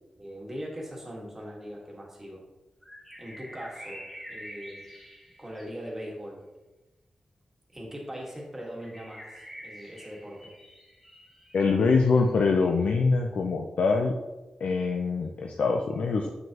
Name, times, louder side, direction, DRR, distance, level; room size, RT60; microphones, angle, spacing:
voice 1, 0.2-2.4 3.2-4.9 5.4-6.4 7.7-10.5, equal, 15° right, -2 dB, 1.6 m, -40 dB
sound 1, 2.8-5.7 8.8-12.3, equal, 10° left, 2.3 m, -47 dB
voice 2, 11.5-14.1 14.6-16.3, left 4 dB, 85° left, 2 dB, 0.5 m, -24 dB
7.4 x 6.2 x 2.9 m, 1.1 s
wide cardioid pair, 135°, 2 cm